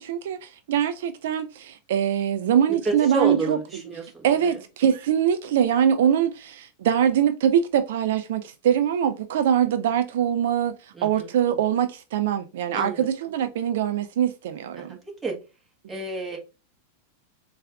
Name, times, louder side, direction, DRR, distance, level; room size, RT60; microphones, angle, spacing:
voice 1, 0.0-4.5 4.8-10.7 11.0-15.0, right 9 dB, 70° right, 0.3 m, -23 dB
voice 2, 2.8-4.6 10.9-11.3 12.7-13.1 14.8-15.4 15.9-16.4, right 3 dB, 15° right, 1.1 m, -30 dB
4.4 x 2.4 x 2.3 m
hypercardioid pair, 125°, 0 cm